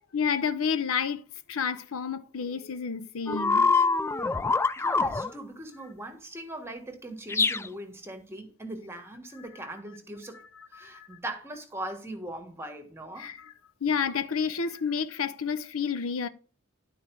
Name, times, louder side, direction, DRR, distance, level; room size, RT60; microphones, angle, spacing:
voice 1, 0.1-1.2 1.5-3.7 10.8-11.1 13.2-13.5 13.8-16.3, left 6 dB, 85° left, 0.7 m, -30 dB
sound 1, 3.3-5.3 7.3-7.7, left 4 dB, 10° left, 0.3 m, -24 dB
voice 2, 4.8-10.4 10.7-13.3, right 1 dB, 10° right, 1.4 m, -40 dB
11.5 x 4.5 x 4.6 m
head